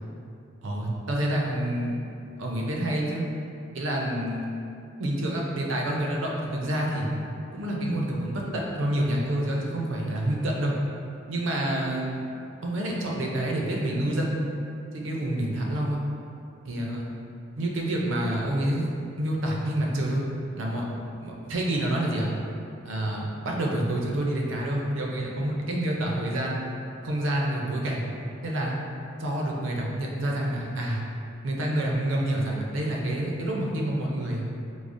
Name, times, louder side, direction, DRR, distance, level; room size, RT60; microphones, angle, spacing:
voice 1, 0.6-2.0 2.4-3.2 3.7-4.5 5.0-7.1 7.5-10.8 11.3-12.2 12.6-14.5 14.9-16.0 16.6-17.0 17.6-18.9 19.2-20.2 20.6-20.8 21.2-22.3 22.8-26.6 27.0-28.0 28.4-28.7 29.2-31.0 31.4-34.4, right 1 dB, 75° right, -2 dB, 0.5 m, -28 dB
4.8 x 2.0 x 2.5 m, 2.6 s
head